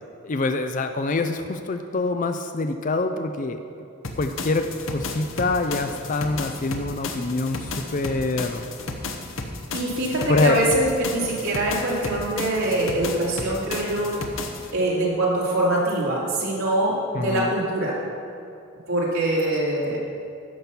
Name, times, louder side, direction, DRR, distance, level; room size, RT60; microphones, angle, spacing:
voice 1, 0.2-3.6 4.2-8.6 10.3-10.6 17.1-17.5, left 3 dB, 40° left, 7 dB, 0.5 m, -25 dB
sound 1, 4.0-14.7, left 3 dB, 70° left, 1.0 m, -33 dB
voice 2, 9.7-14.2 14.7-18.0 18.9-20.0, right 1 dB, 80° right, -5 dB, 2.7 m, -24 dB
11.0 x 7.0 x 6.0 m, 2.5 s
head